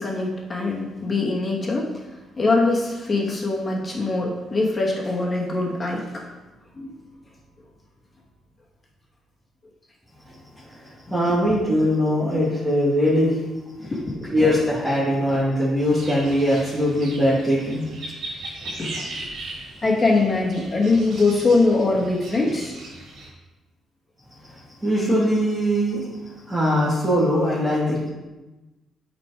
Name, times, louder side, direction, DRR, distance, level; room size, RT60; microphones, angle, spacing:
voice 1, 0.0-1.9 2.4-6.0 6.8-6.9 11.4-11.5 12.3-12.4 13.8-14.3 15.1-15.2 18.8-19.1 19.8-22.8, left 3 dB, 30° left, -3 dB, 2.5 m, -22 dB
voice 2, 10.7-13.4 13.8-13.9 14.3-17.8 24.8-26.0 26.5-28.1, equal, 10° right, -10 dB, 2.8 m, -21 dB
sound 1, 15.8-23.3, right 2 dB, 70° right, 2.8 m, -38 dB
8.8 x 5.2 x 5.0 m, 1.1 s
cardioid pair, 90°, 0 cm